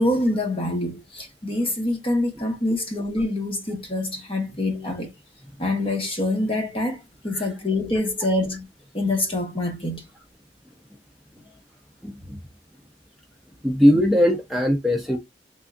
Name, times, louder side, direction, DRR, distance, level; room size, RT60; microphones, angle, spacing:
voice 1, 0.0-5.1 5.6-8.6 8.9-10.0, left 1 dB, 30° left, 1.1 m, -25 dB
voice 2, 12.0-12.4 13.6-15.2, equal, ahead, 0.6 m, -20 dB
3.6 x 2.3 x 3.8 m
head